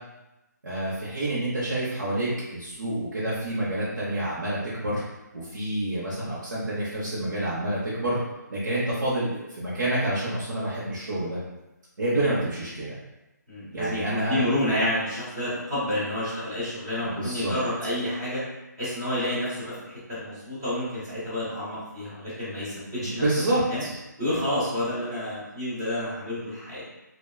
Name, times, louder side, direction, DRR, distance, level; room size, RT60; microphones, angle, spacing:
voice 1, 0.6-5.0 5.3-8.2 8.5-11.4 12.0-13.0 13.7-14.4 17.0-17.5 23.0-23.9, right 1 dB, 75° right, -9 dB, 0.8 m, -28 dB
voice 2, 13.5-18.4 18.8-23.2 23.7-23.8 24.2-26.8, left 1 dB, 15° right, -12 dB, 0.7 m, -29 dB
3.3 x 2.2 x 2.2 m, 0.99 s
hypercardioid pair, 180°, 10 cm